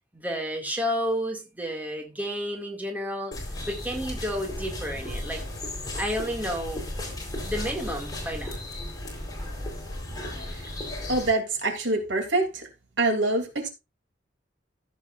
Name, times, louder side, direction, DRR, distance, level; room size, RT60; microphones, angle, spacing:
voice 1, 0.1-3.4 3.7-5.4 6.0-6.9 7.4-8.6, equal, 10° right, 2.4 m, -31 dB
sound 1, 3.3-11.3, left 1 dB, 20° left, 4.3 m, -35 dB
voice 2, 11.1-12.6 13.0-13.7, right 2 dB, 85° right, 3.1 m, -25 dB
15.0 x 7.4 x 2.6 m
head